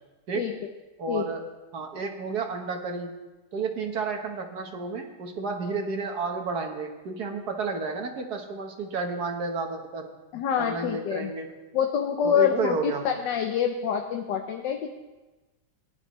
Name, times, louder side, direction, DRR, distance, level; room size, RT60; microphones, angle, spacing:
voice 1, 1.0-1.4 1.7-3.1 3.5-10.1 10.6-11.5 12.2-13.0, right 4 dB, 60° right, 4 dB, 1.7 m, -31 dB
voice 2, 10.3-11.3 11.7-14.9, left 8 dB, 75° left, 4 dB, 1.4 m, -26 dB
18.0 x 10.5 x 3.1 m, 1.2 s
omnidirectional pair, 2.0 m